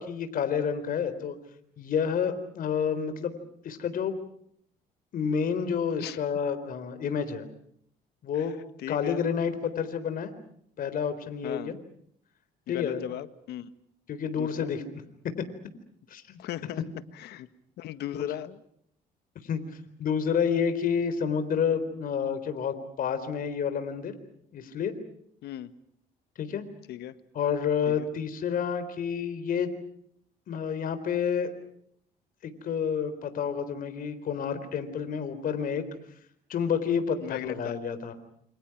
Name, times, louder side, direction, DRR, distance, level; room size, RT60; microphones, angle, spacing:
voice 1, 0.0-1.4 1.8-3.4 3.6-4.2 5.1-7.5 8.2-8.5 8.9-10.3 10.8-11.8 12.7-13.0 14.1-14.8 16.1-16.4 19.4-19.6 20.0-24.1 24.5-24.9 26.4-26.6 27.3-29.7 30.5-31.5 32.4-35.8 36.5-38.1, left 7 dB, 55° left, 10 dB, 4.0 m, -29 dB
voice 2, 8.4-9.2 11.4-11.7 12.7-13.7 14.4-14.7 16.4-16.8 17.1-17.5 17.8-18.6 25.4-25.7 26.9-27.1 27.9-28.1 37.2-37.8, left 12 dB, 75° left, 13 dB, 1.6 m, -37 dB
28.5 x 26.5 x 6.0 m, 0.68 s
cardioid pair, 110°, 17 cm